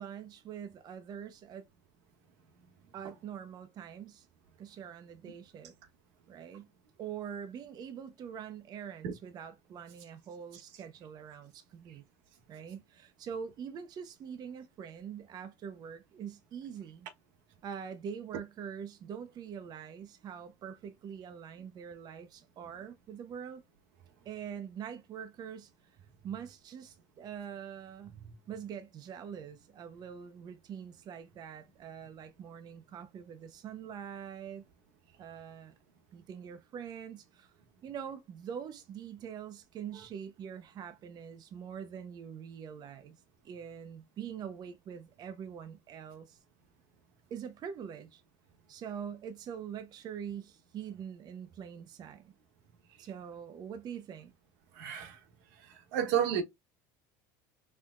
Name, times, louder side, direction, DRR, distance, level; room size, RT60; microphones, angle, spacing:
voice 1, 0.0-1.7 2.9-4.3 4.6-5.7 6.3-6.7 7.0-12.0 12.5-17.1 17.6-23.6 24.2-26.0 26.2-28.2 28.5-34.7 35.2-35.7 36.1-37.5 37.8-43.2 43.4-46.4 47.3-48.2 48.7-52.3 53.0-54.3, right 8 dB, 45° right, 0.7 m, -44 dB
voice 2, 54.7-55.2 55.7-56.4, right 9 dB, 80° right, 1.2 m, -31 dB
4.5 x 3.4 x 2.4 m
supercardioid pair, 115°, 10 cm